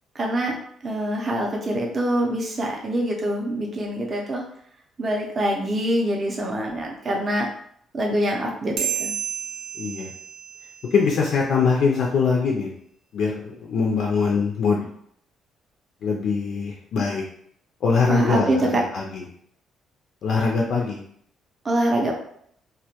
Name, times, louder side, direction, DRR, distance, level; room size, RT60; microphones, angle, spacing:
voice 1, 0.2-0.5 0.8-4.5 5.0-7.5 7.9-9.1 18.1-18.8 21.6-22.2, right 1 dB, 30° right, -1 dB, 0.4 m, -24 dB
sound 1, 8.8-11.6, right 9 dB, 90° right, 0.4 m, -32 dB
voice 2, 9.8-10.1 10.9-12.7 13.1-14.9 16.0-17.2 17.8-19.2 20.2-21.0, left 5 dB, 65° left, -2 dB, 0.3 m, -22 dB
2.1 x 2.1 x 2.8 m, 0.66 s
cardioid pair, 145°, 0 cm